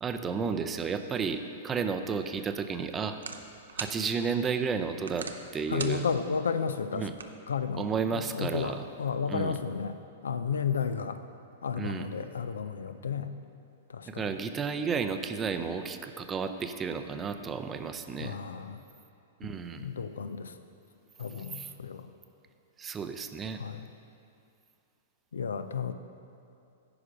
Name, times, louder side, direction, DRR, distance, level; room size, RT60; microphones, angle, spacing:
voice 1, 0.0-3.2 3.8-5.3 5.5-6.0 6.9-7.1 7.7-8.8 9.3-9.6 11.7-12.1 14.1-18.4 19.4-19.8 21.3-21.7 22.8-23.6, right 5 dB, 20° right, 8 dB, 0.5 m, -32 dB
sound 1, 2.0-8.1, right 5 dB, 90° right, 0.6 m, -45 dB
voice 2, 5.7-7.1 7.5-10.0 10.2-11.2 11.6-13.3 13.9-14.2 18.2-18.8 19.4-20.5 21.2-22.1 23.6-23.9 25.3-25.9, left 6 dB, 90° left, 10 dB, 0.4 m, -33 dB
9.8 x 5.0 x 5.1 m, 2.5 s
hypercardioid pair, 125°, 0 cm